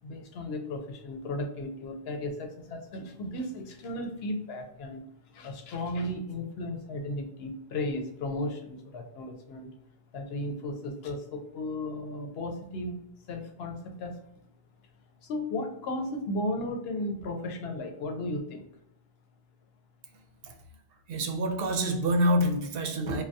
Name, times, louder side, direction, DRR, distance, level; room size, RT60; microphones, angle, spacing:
voice 1, 0.0-9.7 10.1-13.0 13.3-14.2 15.2-18.7, left 1 dB, 80° left, 3 dB, 0.9 m, -35 dB
voice 2, 21.1-23.2, equal, 70° right, 5 dB, 0.7 m, -26 dB
2.6 x 2.2 x 3.3 m, 0.81 s
omnidirectional pair, 1.0 m